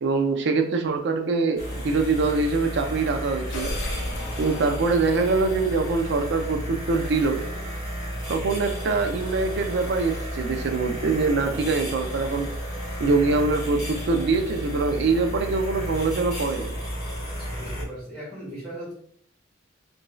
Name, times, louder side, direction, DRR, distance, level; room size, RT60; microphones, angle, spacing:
voice 1, 0.0-3.7 4.4-7.4 8.3-12.5 13.0-16.7, right 3 dB, 60° right, 6 dB, 0.4 m, -24 dB
sound 1, 1.6-17.8, equal, 35° left, 1.3 m, -33 dB
sound 2, 3.5-5.5, left 1 dB, 65° left, 0.4 m, -34 dB
voice 2, 17.4-18.9, right 1 dB, ahead, -12 dB, 1.5 m, -38 dB
3.0 x 2.6 x 2.2 m, 0.62 s
head